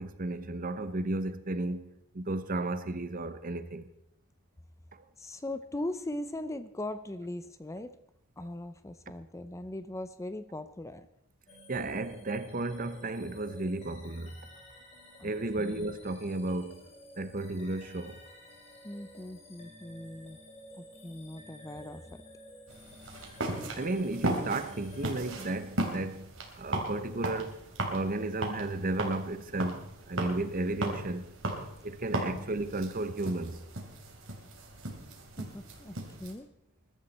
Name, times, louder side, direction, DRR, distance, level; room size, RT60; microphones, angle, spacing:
voice 1, 0.0-1.9 2.1-3.9 4.9-5.0 8.4-8.5 11.7-14.4 15.2-16.8 17.2-18.2 23.8-31.3 31.8-33.6, right 2 dB, 40° right, 1.0 m, -34 dB
voice 2, 5.2-8.0 8.4-11.1 15.2-15.3 15.6-15.8 18.8-20.4 20.8-22.2 32.3-32.5 35.4-36.5, left 1 dB, 15° left, 0.6 m, -40 dB
sound 1, 11.5-26.2, equal, 30° left, 3.4 m, -52 dB
sound 2, 22.7-36.3, right 1 dB, 70° right, 3.1 m, -37 dB
21.0 x 12.5 x 4.2 m
head